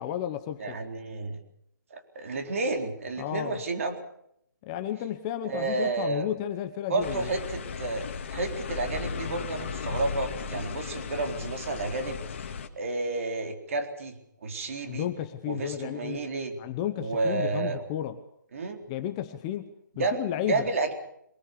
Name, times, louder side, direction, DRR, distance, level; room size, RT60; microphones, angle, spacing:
voice 1, 0.0-0.8 3.2-3.6 4.6-7.3 14.9-16.2 16.6-18.2 18.9-19.7 20.0-20.7, left 11 dB, 15° left, 8 dB, 0.9 m, -33 dB
voice 2, 0.6-1.4 1.9-4.0 5.4-6.3 6.9-12.2 12.8-14.2 14.4-15.1 15.5-16.6 17.0-17.8 18.5-18.8 20.0-20.9, right 3 dB, 45° right, 5 dB, 4.0 m, -31 dB
sound 1, 7.0-12.7, left 6 dB, 35° left, 2.1 m, -36 dB
23.5 x 20.0 x 6.8 m, 0.73 s
hypercardioid pair, 165°, 11 cm